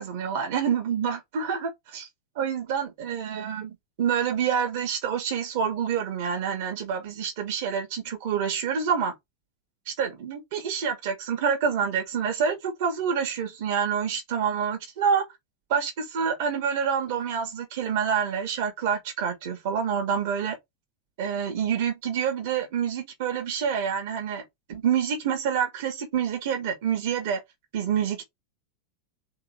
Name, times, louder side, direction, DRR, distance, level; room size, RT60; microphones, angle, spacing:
voice 1, 0.0-2.1 2.4-9.1 9.9-15.2 15.7-20.6 21.2-24.4 24.7-27.4 27.7-28.3, right 7 dB, 50° right, 1.9 m, -27 dB
3.9 x 3.6 x 3.5 m
figure-of-eight pair, 90°, 0 cm